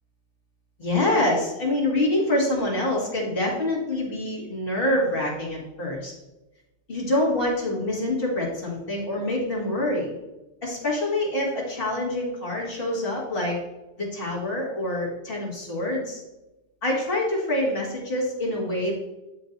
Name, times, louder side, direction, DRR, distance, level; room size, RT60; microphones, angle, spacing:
voice 1, 0.8-6.1 6.9-10.1 10.6-13.6 14.0-16.2 16.8-18.9, left 1 dB, 50° left, -4 dB, 2.0 m, -26 dB
9.4 x 4.5 x 2.6 m, 0.99 s
omnidirectional pair, 1.2 m